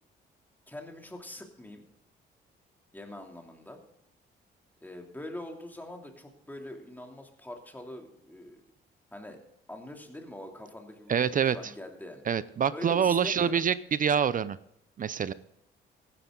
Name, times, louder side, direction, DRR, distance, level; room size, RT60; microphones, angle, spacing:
voice 1, 0.7-1.8 2.9-3.8 4.8-8.6 9.1-9.4 9.7-12.2 12.7-13.6, left 1 dB, 10° left, 2 dB, 2.9 m, -43 dB
voice 2, 11.1-11.6 12.3-14.6 15.0-15.3, right 7 dB, 45° right, 17 dB, 0.6 m, -26 dB
15.5 x 12.0 x 3.9 m, 0.78 s
cardioid pair, 90°, 20 cm